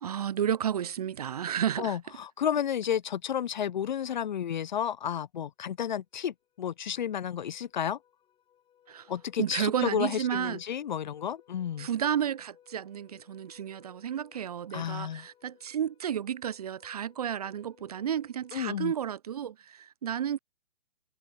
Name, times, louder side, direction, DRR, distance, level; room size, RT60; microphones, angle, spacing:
voice 1, 0.0-2.0 8.9-9.1 9.4-10.6 11.8-20.4, right 9 dB, 40° right, 0.5 m, -32 dB
voice 2, 1.8-8.0 9.1-11.9 14.7-15.3 18.5-18.9, left 9 dB, 45° left, 0.6 m, -32 dB
sound 1, 6.4-18.7, left 10 dB, 15° left, 6.6 m, -62 dB
figure-of-eight pair, 125°, 32 cm